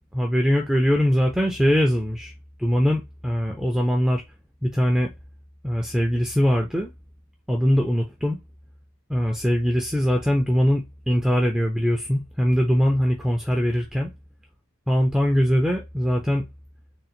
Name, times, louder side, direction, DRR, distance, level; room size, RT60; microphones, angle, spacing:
voice 1, 0.1-2.3 2.6-4.2 4.6-5.1 5.6-6.9 7.5-8.4 9.1-14.1 14.9-16.4, equal, 5° right, 0.5 m, -22 dB
3.8 x 2.1 x 4.3 m
head